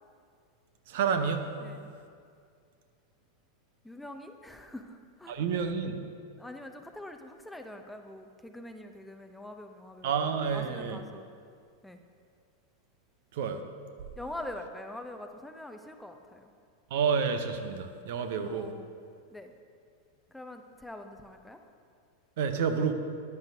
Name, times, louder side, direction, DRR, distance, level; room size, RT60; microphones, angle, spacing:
voice 1, 0.9-1.5 5.3-6.0 10.0-11.0 13.3-13.6 16.9-18.7 22.4-22.9, right 6 dB, 55° right, 8 dB, 0.7 m, -29 dB
voice 2, 1.6-1.9 3.8-5.4 6.4-11.3 11.8-12.0 14.2-16.5 18.5-18.9 19.3-19.5 20.3-21.6, left 1 dB, 5° left, 6 dB, 0.6 m, -44 dB
13.0 x 10.5 x 2.7 m, 2.2 s
figure-of-eight pair, 90°, 0 cm